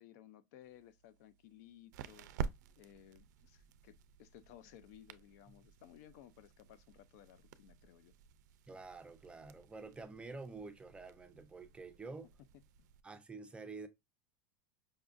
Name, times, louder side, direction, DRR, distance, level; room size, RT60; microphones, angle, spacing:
voice 1, 0.0-2.3 2.8-8.1 12.5-12.6, left 11 dB, 65° left, 0.4 m, -59 dB
sound 1, 0.6-13.0, right 7 dB, 80° right, 0.4 m, -50 dB
voice 2, 8.7-12.3 13.0-13.9, right 3 dB, 10° right, 0.4 m, -48 dB
5.2 x 2.3 x 2.5 m
supercardioid pair, 135°, 9 cm